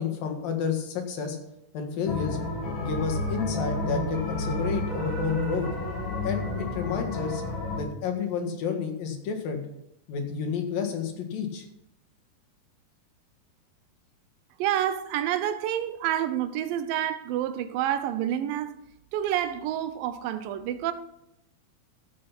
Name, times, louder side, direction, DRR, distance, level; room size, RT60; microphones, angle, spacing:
voice 1, 0.0-1.4 1.7-2.4 2.8-5.7 6.2-7.4 7.7-9.6 10.1-11.7, left 6 dB, 85° left, 3.5 m, -30 dB
sound 1, 2.1-7.8, left 2 dB, 35° left, 3.2 m, -30 dB
voice 2, 14.6-18.8 19.1-20.9, right 11 dB, 85° right, 2.5 m, -28 dB
14.0 x 7.6 x 5.9 m
omnidirectional pair, 3.9 m